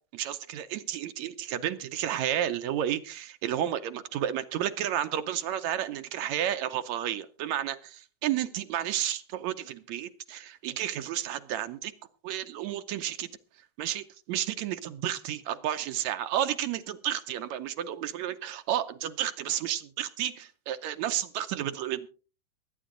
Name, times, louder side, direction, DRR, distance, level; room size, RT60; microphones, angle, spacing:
voice 1, 0.1-11.9 12.2-13.3 13.8-22.1, right 11 dB, 75° right, 1.7 m, -32 dB
21.0 x 9.4 x 3.8 m
omnidirectional pair, 3.8 m